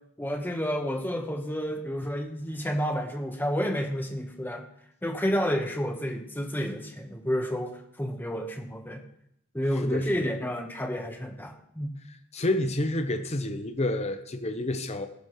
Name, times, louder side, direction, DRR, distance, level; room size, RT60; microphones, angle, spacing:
voice 1, 0.2-4.7 5.0-9.0 9.5-11.9, equal, 10° left, 4 dB, 1.1 m, -30 dB
voice 2, 12.3-15.1, left 1 dB, 30° left, 7 dB, 0.7 m, -29 dB
15.0 x 12.0 x 3.1 m, 0.74 s
head